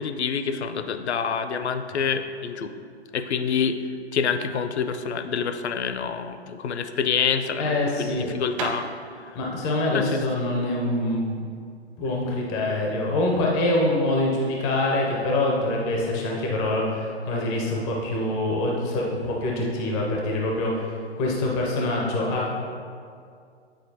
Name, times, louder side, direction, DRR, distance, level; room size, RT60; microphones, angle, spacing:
voice 1, 0.0-2.7 3.1-3.8 4.1-8.9 9.9-10.2, left 6 dB, 70° left, 9 dB, 0.6 m, -27 dB
sound 1, 7.4-12.3, right 3 dB, 30° right, 0.6 m, -39 dB
voice 2, 7.6-8.3 9.3-11.4 12.0-22.5, left 1 dB, 10° left, -2 dB, 0.4 m, -25 dB
9.1 x 4.2 x 2.7 m, 2.3 s
figure-of-eight pair, 130°, 34 cm